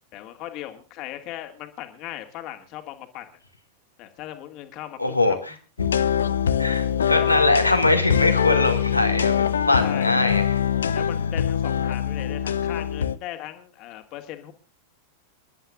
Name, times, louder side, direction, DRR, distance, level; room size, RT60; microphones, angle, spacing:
voice 1, 0.1-3.3 4.0-5.0 5.2-5.4 9.8-10.4 10.9-14.5, left 13 dB, 40° left, 6 dB, 2.3 m, -38 dB
voice 2, 5.0-5.5 6.6-10.6, left 2 dB, 85° left, 4 dB, 2.3 m, -22 dB
sound 1, 5.8-13.2, left 8 dB, 70° left, 0.7 m, -23 dB
29.5 x 11.5 x 2.5 m, 0.31 s
figure-of-eight pair, 90°, 0 cm